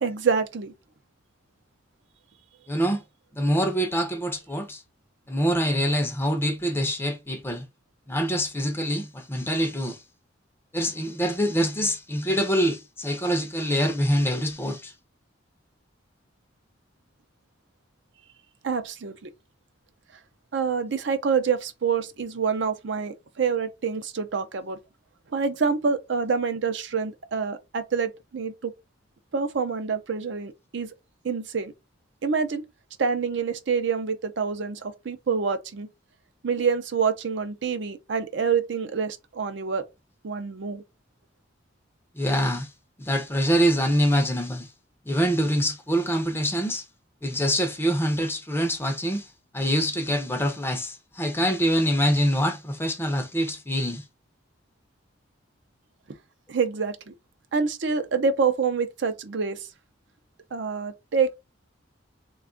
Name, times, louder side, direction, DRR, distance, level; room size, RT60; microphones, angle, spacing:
voice 1, 0.0-0.7 18.6-19.3 20.5-24.8 25.3-28.7 29.3-30.9 31.2-31.7 32.2-32.6 33.0-35.9 36.4-39.9 40.2-40.8 56.5-57.1 57.5-59.6 60.5-61.3, right 5 dB, 60° right, 0.5 m, -26 dB
voice 2, 2.7-3.0 3.3-4.8 5.3-7.7 8.1-10.0 10.7-14.9 42.1-42.7 43.0-44.7 45.1-46.8 47.2-54.0, equal, 10° left, 0.5 m, -25 dB
3.3 x 2.3 x 3.7 m
head